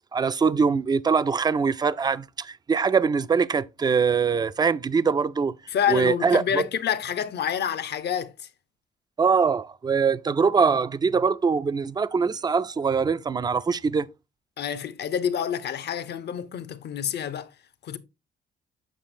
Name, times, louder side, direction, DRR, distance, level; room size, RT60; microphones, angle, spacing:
voice 1, 0.1-5.5 5.9-6.6 9.2-14.1, right 5 dB, 20° right, 0.4 m, -23 dB
voice 2, 5.7-8.5 14.6-17.5 17.8-18.0, left 8 dB, 60° left, 0.7 m, -28 dB
7.5 x 6.3 x 2.6 m
cardioid pair, 90°, 20 cm